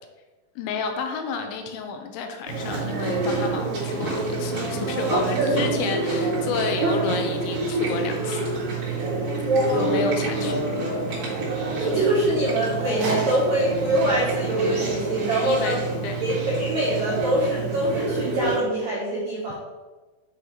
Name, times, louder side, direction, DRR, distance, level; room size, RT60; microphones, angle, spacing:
voice 1, 0.6-10.6 15.4-16.2, left 5 dB, 90° left, 5 dB, 3.0 m, -31 dB
Chewing mastication, 2.5-18.6, right 2 dB, 45° right, 2.3 m, -27 dB
voice 2, 5.1-5.5 6.8-6.9 9.4-9.9 11.8-15.8 16.2-19.5, right 1 dB, 80° right, -8 dB, 1.6 m, -24 dB
8.2 x 2.9 x 4.7 m, 1.2 s
omnidirectional pair, 5.3 m